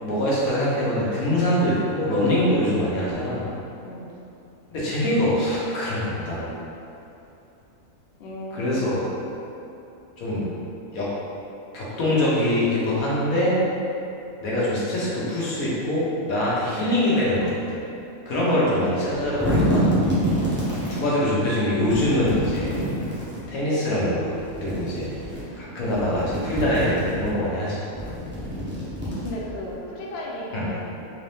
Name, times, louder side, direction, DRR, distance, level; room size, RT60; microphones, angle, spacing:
voice 1, 0.0-3.5 4.7-6.5 8.5-9.0 10.2-10.5 10.9-11.1 11.7-13.6 14.4-17.8 18.3-19.9 20.9-22.8 23.5-25.0 25.6-27.8 30.5-30.7, left 1 dB, 75° left, -7 dB, 1.3 m, -23 dB
voice 2, 8.2-9.0 29.2-31.1, left 1 dB, 60° left, -4 dB, 0.7 m, -35 dB
sound 1, 19.1-21.0 21.8-23.4 24.4-25.4 25.8-27.3 27.9-29.7, equal, 15° right, 0.4 m, -27 dB
3.8 x 2.7 x 3.4 m, 2.8 s
omnidirectional pair, 1.5 m